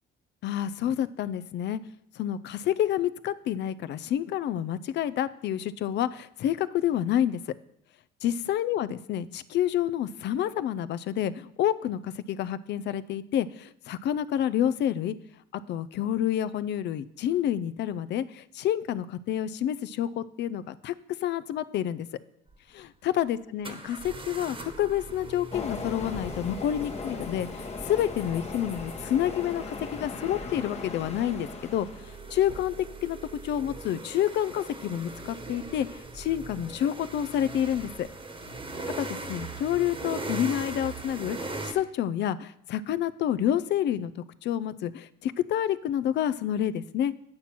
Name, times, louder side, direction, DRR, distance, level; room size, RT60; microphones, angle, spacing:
voice 1, 0.4-1.8 2.2-7.4 8.2-15.2 15.5-20.9 21.2-22.1 22.7-31.9 32.3-33.2 33.4-35.9 36.1-38.1 39.0-41.4 41.6-44.1 44.4-47.1, left 11 dB, 60° left, 16 dB, 0.5 m, -28 dB
sound 1, 22.5-22.6 23.6-41.7, right 3 dB, 25° right, 1.2 m, -41 dB
Train, 25.5-32.2, left 4 dB, 35° left, 1.1 m, -38 dB
8.7 x 4.3 x 6.0 m, 0.74 s
supercardioid pair, 75°, 20 cm